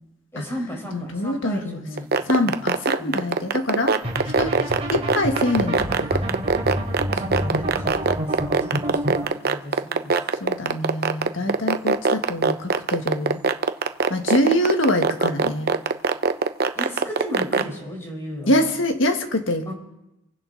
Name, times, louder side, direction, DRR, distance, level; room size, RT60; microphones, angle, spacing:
voice 1, 0.3-2.5 3.0-3.2 7.1-10.2 11.4-11.5 16.7-18.7 19.7-19.8, equal, 15° left, -1 dB, 4.5 m, -35 dB
voice 2, 0.9-1.8 2.3-4.0 4.4-4.5 4.9-5.8 6.1-6.2 10.4-13.4 14.1-15.7 18.5-19.7, left 1 dB, 75° left, 5 dB, 1.6 m, -24 dB
sound 1, 2.0-17.6, right 4 dB, 55° right, 0.7 m, -20 dB
sound 2, 4.0-9.2, equal, 30° right, 3.2 m, -28 dB
26.5 x 10.5 x 4.0 m, 0.93 s
head